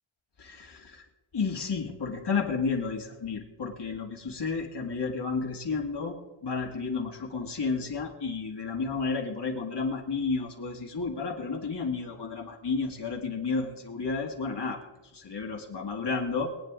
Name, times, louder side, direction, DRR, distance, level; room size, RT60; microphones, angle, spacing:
voice 1, 0.4-1.1 1.3-14.8 15.1-16.5, left 4 dB, 55° left, 1 dB, 2.2 m, -32 dB
23.0 x 9.3 x 3.7 m, 1.1 s
wide cardioid pair, 125°, 48 cm